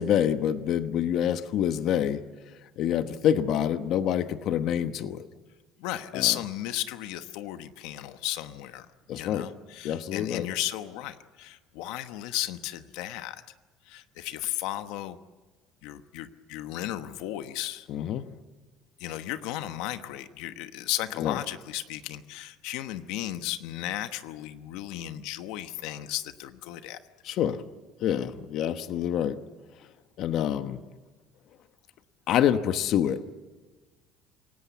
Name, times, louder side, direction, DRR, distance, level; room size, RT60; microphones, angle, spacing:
voice 1, 0.0-2.2 2.8-5.3 6.1-6.3 9.1-9.5 9.8-10.5 17.9-18.2 21.2-21.4 27.2-27.6 28.0-29.4 30.2-30.8 32.3-33.2, left 10 dB, 55° left, 10 dB, 1.1 m, -26 dB
voice 2, 5.8-8.9 9.1-13.4 13.9-15.2 15.8-17.9 19.0-27.0, left 14 dB, 80° left, 10 dB, 1.1 m, -34 dB
27.5 x 17.5 x 8.2 m, 1.3 s
cardioid pair, 145°, 0 cm